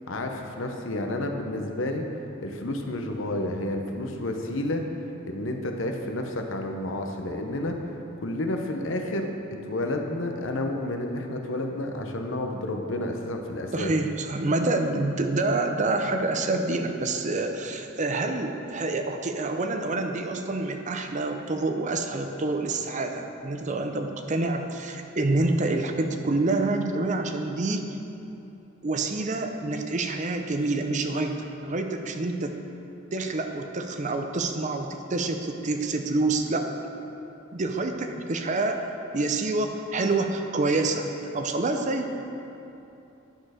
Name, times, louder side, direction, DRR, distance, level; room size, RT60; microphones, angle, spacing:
voice 1, 0.1-2.0 2.4-4.8 5.3-7.8 8.2-9.3 9.6-13.9, left 1 dB, 70° left, 3 dB, 0.9 m, -30 dB
voice 2, 13.7-27.9 28.8-32.6 33.1-36.7 37.5-41.1 41.3-42.2, right 2 dB, 35° right, 5 dB, 0.6 m, -27 dB
10.0 x 6.5 x 5.0 m, 2.9 s
head